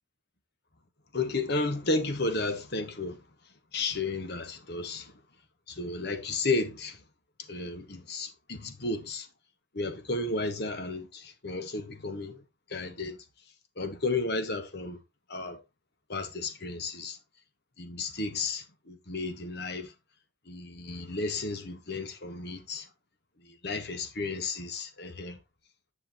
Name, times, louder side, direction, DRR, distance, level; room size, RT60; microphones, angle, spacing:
voice 1, 1.1-3.2 3.7-5.2 5.7-7.0 7.5-9.3 9.7-12.4 12.7-13.2 13.8-15.0 15.3-15.6 16.1-17.2 17.8-19.9 20.5-22.9 23.4-25.4, left 3 dB, 50° left, 1.3 m, -33 dB
9.7 x 6.2 x 3.0 m
head